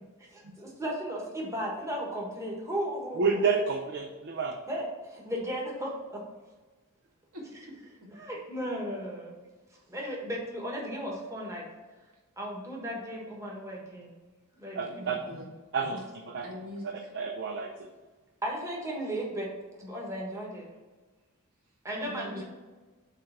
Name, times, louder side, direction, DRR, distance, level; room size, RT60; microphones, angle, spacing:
voice 1, 0.3-3.4 4.7-6.2 8.1-9.3 9.9-11.6 12.4-14.1 14.6-15.1 15.9-16.0 18.4-19.5 19.8-20.7 21.8-22.4, equal, 15° right, -3 dB, 1.5 m, -35 dB
voice 2, 3.2-4.6 14.8-15.2 15.7-16.4 17.1-17.9, right 5 dB, 55° right, 2 dB, 0.6 m, -29 dB
voice 3, 7.3-7.7 8.0-8.1 14.9-15.4 16.4-17.1 22.0-22.4, left 1 dB, 90° right, -3 dB, 2.2 m, -43 dB
7.5 x 3.3 x 5.8 m, 1.3 s
head